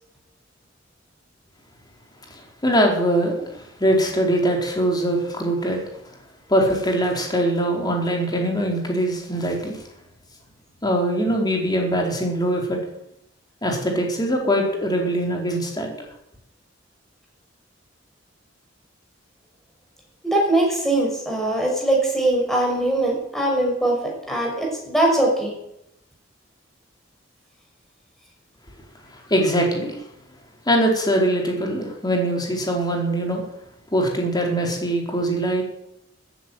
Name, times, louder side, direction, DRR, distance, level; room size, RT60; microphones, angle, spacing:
voice 1, 2.4-5.8 6.5-9.8 10.8-12.8 13.6-15.9 29.3-30.0 30.7-33.4 33.9-35.6, right 1 dB, 20° left, 1 dB, 4.1 m, -22 dB
voice 2, 20.2-24.0 24.3-25.5, right 1 dB, ahead, -2 dB, 6.0 m, -21 dB
14.0 x 10.5 x 9.4 m, 0.83 s
head